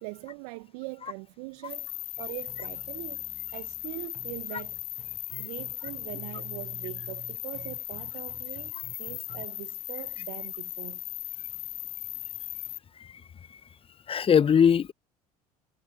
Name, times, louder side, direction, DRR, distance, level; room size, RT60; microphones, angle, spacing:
voice 1, 0.0-3.2 3.5-4.7 5.4-11.0, right 29 dB, 65° right, 1.5 m, -41 dB
sound 1, 1.7-12.8, left 19 dB, 70° left, 1.3 m, -38 dB
sound 2, 2.5-9.5, right 10 dB, 45° right, 5.0 m, -49 dB
voice 2, 14.1-14.9, left 7 dB, 30° left, 1.0 m, -22 dB
hypercardioid pair, 65°, 20 cm